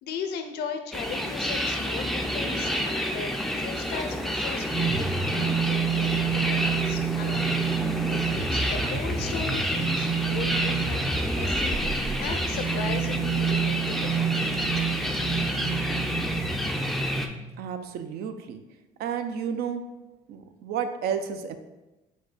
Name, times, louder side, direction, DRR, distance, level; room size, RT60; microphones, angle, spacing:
voice 1, 0.0-7.5 8.1-14.2, left 6 dB, 75° left, 7 dB, 0.6 m, -37 dB
sound 1, 0.9-17.3, equal, ahead, 0.3 m, -29 dB
sound 2, 4.7-17.5, right 7 dB, 55° right, 1.4 m, -29 dB
voice 2, 17.6-18.6 19.0-19.8 20.3-21.6, right 7 dB, 70° right, 8 dB, 0.4 m, -31 dB
5.1 x 2.2 x 3.9 m, 1.0 s
cardioid pair, 110°, 17 cm